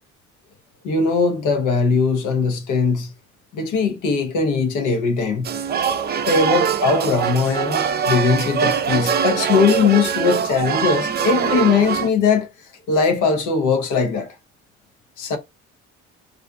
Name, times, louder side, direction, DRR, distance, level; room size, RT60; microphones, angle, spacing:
voice 1, 0.8-3.1 3.5-5.5 6.2-12.5 12.9-14.4 15.2-15.4, left 5 dB, 90° left, 0.7 m, -20 dB
sound 1, 5.4-12.1, right 7 dB, 35° right, 0.4 m, -22 dB
2.5 x 2.2 x 2.4 m
cardioid pair, 90°, 30 cm